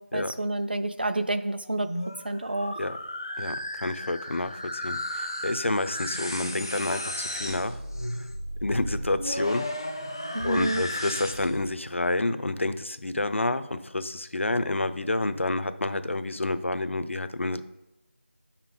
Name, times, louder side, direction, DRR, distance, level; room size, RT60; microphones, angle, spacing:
voice 1, 0.0-1.9 2.2-2.8 10.3-10.8, right 1 dB, 50° right, 10 dB, 0.6 m, -29 dB
sound 1, 1.7-11.7, left 1 dB, 20° left, 0.4 m, -34 dB
voice 2, 3.4-7.7 8.6-9.6 10.4-17.6, left 2 dB, 75° left, 12 dB, 0.7 m, -29 dB
8.9 x 5.8 x 3.8 m, 0.95 s
figure-of-eight pair, 175°, 7 cm